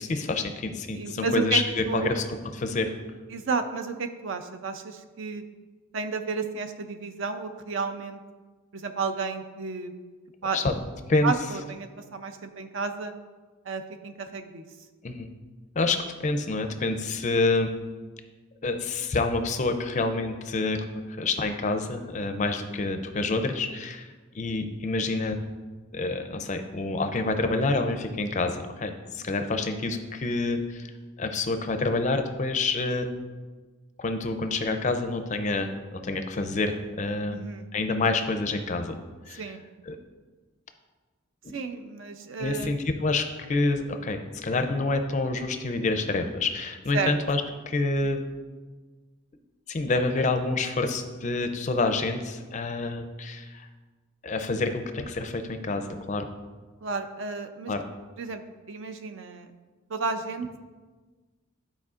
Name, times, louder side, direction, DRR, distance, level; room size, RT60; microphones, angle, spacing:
voice 1, 0.0-2.2 2.5-2.9 10.5-10.8 11.1-11.3 15.0-15.3 15.8-17.7 18.6-24.1 24.3-25.4 25.9-30.9 31.2-33.1 34.0-37.4 37.7-38.9 39.3-39.4 39.9-40.0 41.4-41.5 42.4-48.2 49.7-53.7 54.2-56.3 57.7-57.8, left 3 dB, 35° left, 7 dB, 0.4 m, -27 dB
voice 2, 0.9-1.6 1.9-2.1 3.3-5.4 5.9-8.2 8.7-9.9 10.4-10.6 11.2-13.1 13.7-14.6 37.3-37.7 39.4-39.6 41.5-42.7 46.9-47.1 56.8-57.7 58.2-58.4 58.7-59.5 59.9-60.6, right 4 dB, 60° right, 8 dB, 0.5 m, -32 dB
12.0 x 4.3 x 2.4 m, 1.4 s
head